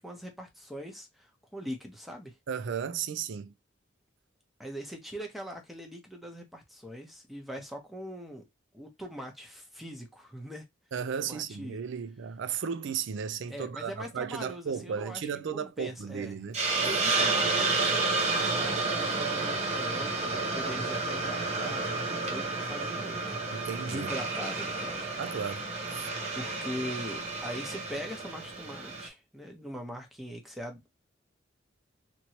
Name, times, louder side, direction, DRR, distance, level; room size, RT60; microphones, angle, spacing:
voice 1, 0.0-2.4 4.6-8.5 8.7-10.6 11.3-11.8 13.5-15.2 15.5-16.4 16.8-23.4 23.8-25.1 26.3-30.9, equal, ahead, 0.8 m, -41 dB
voice 2, 2.5-3.5 10.9-17.0 23.5-24.1 25.2-25.6 25.9-26.1, right 7 dB, 65° right, 0.4 m, -35 dB
Hiss, 16.5-29.1, right 3 dB, 35° right, 0.8 m, -31 dB
2.9 x 2.9 x 2.8 m
head